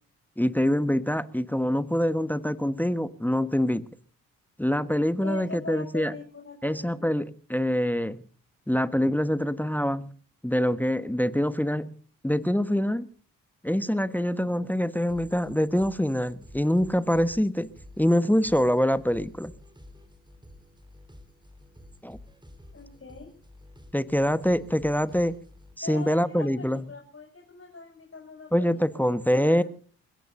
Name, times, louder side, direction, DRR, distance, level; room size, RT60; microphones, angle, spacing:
voice 1, 0.4-3.9 4.6-6.1 6.6-8.2 8.7-10.1 10.4-11.9 12.2-13.1 13.6-17.7 18.0-19.5 22.0-22.2 23.9-25.3 25.8-26.8 28.5-29.6, equal, 5° left, 14 dB, 1.2 m, -25 dB
voice 2, 5.2-7.0 22.7-23.3 25.8-28.8 29.3-29.6, left 4 dB, 35° left, 0 dB, 6.8 m, -41 dB
sound 1, 15.1-25.8, left 1 dB, 10° right, 4.2 m, -51 dB
29.5 x 16.5 x 2.7 m, 0.43 s
hypercardioid pair, 40°, 38 cm